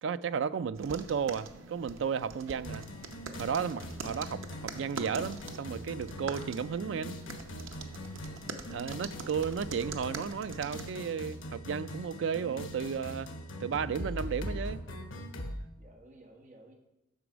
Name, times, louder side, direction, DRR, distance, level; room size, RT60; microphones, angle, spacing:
voice 1, 0.0-2.8 3.4-7.2 8.7-13.3 13.6-14.8, right 6 dB, 65° right, 0.3 m, -33 dB
sound 1, 0.7-11.0, right 3 dB, 90° right, 0.7 m, -44 dB
sound 2, 2.6-15.6, left 1 dB, 80° left, 1.1 m, -42 dB
voice 2, 8.1-8.7 15.8-16.7, right 1 dB, 40° right, 1.5 m, -56 dB
8.0 x 6.1 x 5.0 m
head